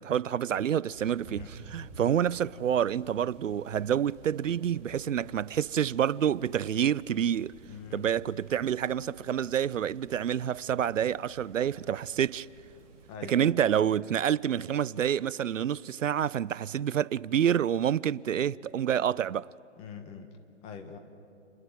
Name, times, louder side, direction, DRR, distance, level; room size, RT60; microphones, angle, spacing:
voice 1, 0.0-1.4 1.7-7.5 7.9-12.5 13.3-19.5, right 9 dB, 85° right, 0.5 m, -28 dB
sound 1, 0.9-13.2, right 4 dB, 20° right, 3.6 m, -52 dB
voice 2, 7.7-8.1 13.1-13.6 19.8-21.0, left 6 dB, 15° left, 1.2 m, -44 dB
29.5 x 11.0 x 9.1 m
figure-of-eight pair, 140°, 37 cm